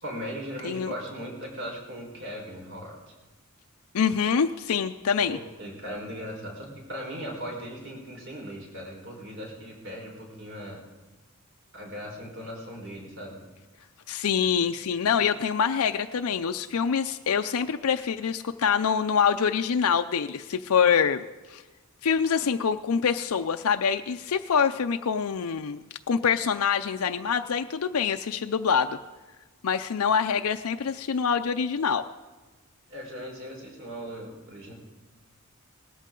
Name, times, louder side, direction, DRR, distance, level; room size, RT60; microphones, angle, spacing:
voice 1, 0.0-3.1 5.2-10.8 11.7-13.4 32.9-34.7, equal, 55° right, 0 dB, 4.6 m, -38 dB
voice 2, 3.9-5.4 14.1-21.2 21.5-21.6 22.0-25.8 26.1-29.0 29.6-32.0, left 6 dB, 75° left, 7 dB, 0.5 m, -25 dB
19.5 x 13.5 x 3.8 m, 1.2 s
head